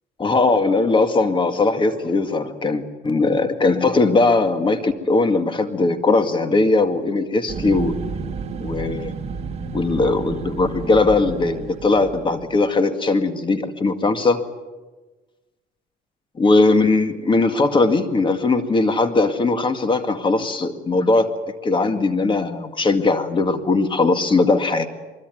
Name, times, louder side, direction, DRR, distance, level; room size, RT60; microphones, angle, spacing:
voice 1, 0.2-7.9 8.6-9.1 9.7-14.4 16.4-21.3 21.6-24.9, left 3 dB, 30° left, 8 dB, 2.1 m, -19 dB
sound 1, 7.5-12.7, right 5 dB, 35° right, 2.3 m, -31 dB
23.5 x 22.0 x 9.3 m, 1.2 s
cardioid pair, 110°, 17 cm